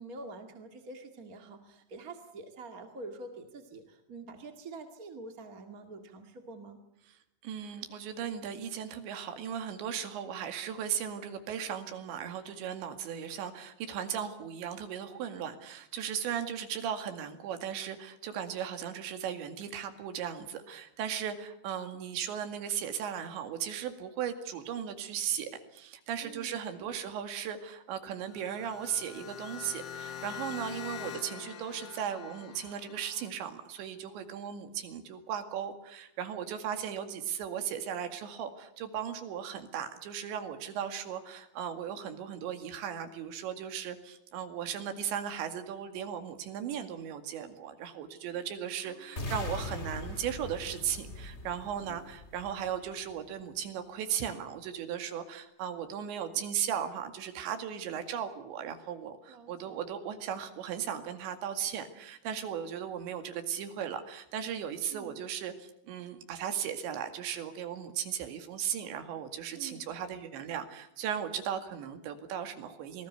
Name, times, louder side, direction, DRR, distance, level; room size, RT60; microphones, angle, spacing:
voice 1, 0.0-6.8 26.2-26.9 48.8-49.3 51.8-52.1 59.3-59.8 64.9-65.1 69.6-69.9, right 3 dB, 40° right, 6 dB, 1.2 m, -46 dB
voice 2, 7.4-73.1, right 9 dB, 85° right, 8 dB, 4.4 m, -37 dB
sound 1, 28.2-33.3, left 8 dB, 75° left, 1.4 m, -44 dB
sound 2, 49.2-53.2, left 2 dB, 25° left, 1.5 m, -41 dB
26.5 x 19.5 x 8.1 m, 0.78 s
omnidirectional pair, 5.0 m